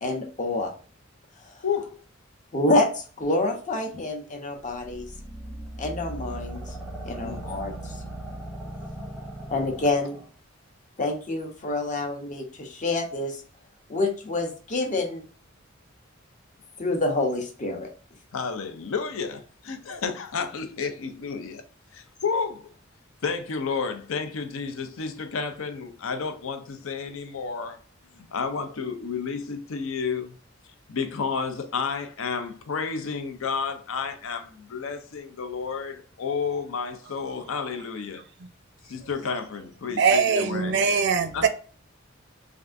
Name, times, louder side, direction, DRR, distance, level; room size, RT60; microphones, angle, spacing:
voice 1, 0.0-0.7 2.5-5.1 5.8-6.7 7.0-7.9 9.5-10.2 11.0-13.4 13.9-15.2 16.8-17.9, left 2 dB, 40° left, 0.7 m, -27 dB
voice 2, 1.6-2.0 7.2-7.4 18.3-21.6 21.9-22.7 23.2-27.8 28.2-30.3 30.9-38.2 38.8-40.8 41.3-41.5, left 5 dB, 75° left, 0.5 m, -31 dB
sound 1, 4.7-10.3, right 1 dB, 5° left, 0.8 m, -38 dB
voice 3, 40.0-41.5, right 5 dB, 60° right, 0.5 m, -21 dB
3.4 x 2.5 x 2.5 m
head